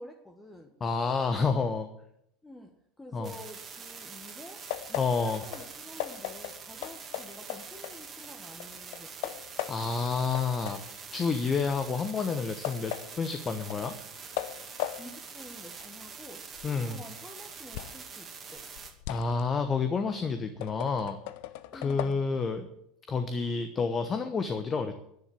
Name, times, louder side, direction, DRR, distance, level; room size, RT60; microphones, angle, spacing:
voice 1, 0.0-0.7 2.4-4.6 4.9-9.4 15.0-18.7 21.7-22.3, left 1 dB, 10° left, 3 dB, 1.6 m, -49 dB
voice 2, 0.8-1.9 3.1-3.3 5.0-5.4 9.7-13.9 16.6-17.0 19.1-21.2 21.7-22.7 23.1-25.0, left 4 dB, 25° left, 8 dB, 1.1 m, -29 dB
sound 1, 3.2-18.9, right 6 dB, 25° right, 2.2 m, -45 dB
sound 2, 4.7-8.3 8.6-10.1 10.3-18.1 18.5-22.1, left 14 dB, 55° left, 0.7 m, -39 dB
10.5 x 10.0 x 8.9 m, 0.76 s
figure-of-eight pair, 75°, 0 cm